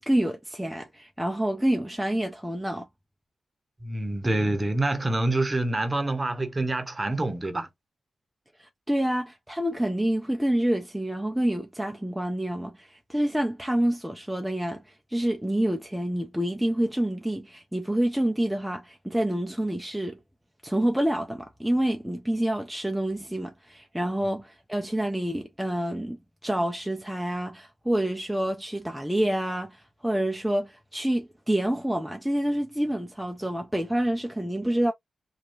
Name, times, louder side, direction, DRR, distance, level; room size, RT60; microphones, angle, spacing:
voice 1, 0.1-2.9 8.6-20.2 20.6-34.9, right 1 dB, 5° right, 0.4 m, -27 dB
voice 2, 3.8-7.7, right 2 dB, 25° right, 0.8 m, -26 dB
2.8 x 2.4 x 2.3 m
cardioid pair, 70°, 0 cm